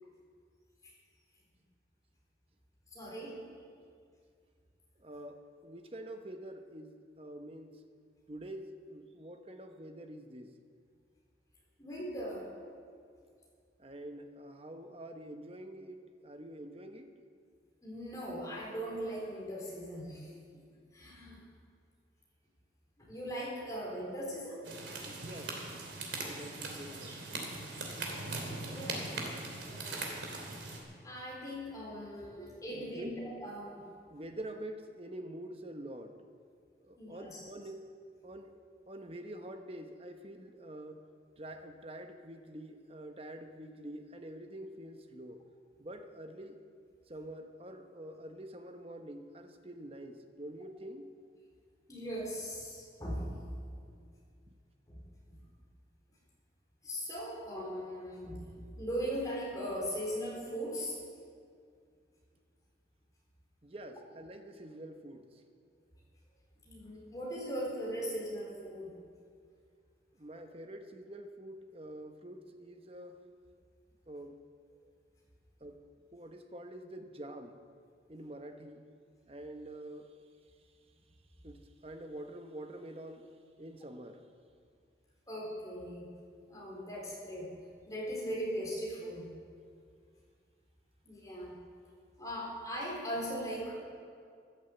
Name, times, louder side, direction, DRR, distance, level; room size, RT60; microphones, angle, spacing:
voice 1, 2.9-3.4 11.8-12.5 17.8-20.6 20.9-21.4 23.0-24.6 28.7-29.2 29.7-30.2 31.0-33.9 37.0-37.5 51.9-53.3 54.9-55.0 55.3-55.4 56.8-60.9 66.6-68.9 85.3-86.1 86.5-87.5 87.9-89.3 91.0-91.5 92.2-93.8, equal, 20° left, -4 dB, 4.2 m, -39 dB
voice 2, 5.0-7.8 8.3-10.6 13.8-17.1 24.9-25.6 26.2-27.2 32.1-32.4 32.7-33.1 34.1-36.2 36.8-37.9 38.2-38.6 38.9-41.0 41.4-45.4 45.8-46.6 47.1-51.1 63.6-65.4 70.2-73.2 74.1-74.4 75.6-77.6 78.1-78.9 79.3-80.1 81.4-83.3 83.6-84.2, right 1 dB, 30° right, 6 dB, 1.0 m, -46 dB
sound 1, 24.6-30.8, right 3 dB, 90° right, 2.8 m, -40 dB
14.0 x 11.0 x 7.9 m, 2.2 s
head